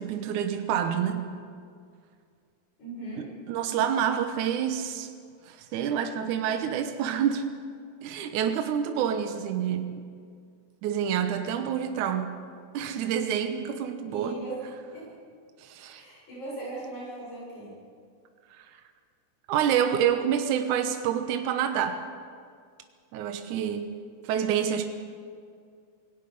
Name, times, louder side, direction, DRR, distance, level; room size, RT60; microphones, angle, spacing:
voice 1, 0.0-1.3 3.2-5.1 5.5-7.5 8.0-10.0 10.8-12.4 12.7-14.4 15.6-16.0 18.5-18.7 19.5-22.0 23.1-24.0 24.2-24.9, right 8 dB, 75° right, 6 dB, 2.5 m, -28 dB
voice 2, 2.8-3.3 14.1-15.1 15.9-17.7, right 2 dB, 70° left, -6 dB, 9.3 m, -39 dB
27.0 x 18.0 x 5.4 m, 2.2 s
omnidirectional pair, 3.6 m